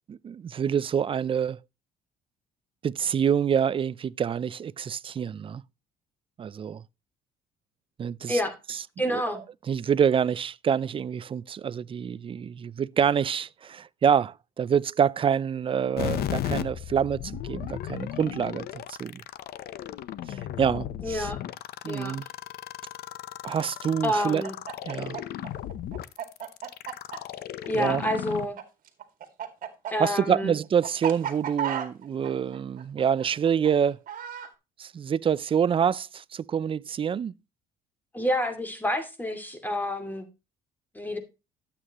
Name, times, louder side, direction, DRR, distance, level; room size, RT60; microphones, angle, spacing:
voice 1, 0.1-1.6 2.8-5.6 6.4-6.8 8.0-8.4 8.7-8.8 9.1-19.2 20.3-21.3 21.8-22.2 23.4-24.4 24.8-25.2 27.7-28.0 30.0-34.0 34.8-37.3, right 8 dB, 30° right, 0.5 m, -26 dB
voice 2, 9.0-9.4 21.0-21.4 21.9-22.2 24.0-24.5 27.7-28.6 29.9-30.5 38.1-40.3 40.9-41.2, equal, 10° left, 2.5 m, -28 dB
sound 1, 16.0-28.5, left 12 dB, 65° left, 0.8 m, -35 dB
Chicken rooster, 24.2-28.6 28.9-34.5, right 9 dB, 55° right, 2.2 m, -34 dB
12.5 x 8.6 x 3.0 m
cardioid pair, 110°, 17 cm